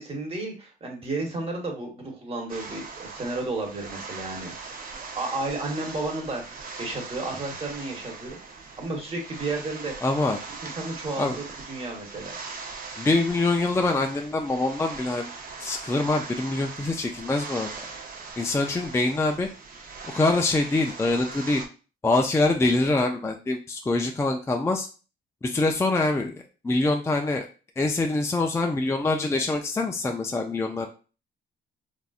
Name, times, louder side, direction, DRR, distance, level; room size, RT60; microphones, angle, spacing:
voice 1, 0.0-4.5 5.0-10.1 10.6-12.4, right 2 dB, 30° right, 0 dB, 1.2 m, -33 dB
sound 1, 2.5-21.7, right 4 dB, 45° right, 0.7 m, -40 dB
voice 2, 10.0-10.4 11.2-11.4 13.0-15.3 15.6-17.7 18.4-19.5 20.0-21.6 22.0-24.9 25.4-27.5 27.8-30.9, left 2 dB, 15° left, 3 dB, 0.4 m, -24 dB
3.4 x 2.6 x 2.4 m, 0.34 s
cardioid pair, 90°, 20 cm